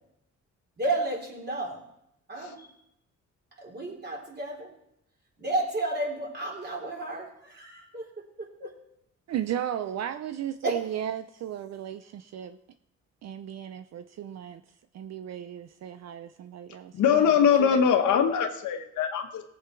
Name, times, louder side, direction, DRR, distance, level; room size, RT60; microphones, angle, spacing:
voice 1, 0.8-1.8 2.3-2.7 3.6-4.7 5.4-8.7 10.6-10.8, right 2 dB, 35° right, 3.9 m, -32 dB
voice 2, 9.3-12.6 13.2-14.6 14.9-17.9, right 10 dB, 60° right, 0.6 m, -35 dB
voice 3, 16.9-19.4, left 7 dB, 75° left, 1.4 m, -22 dB
18.0 x 8.0 x 4.6 m
cardioid pair, 90°, 30 cm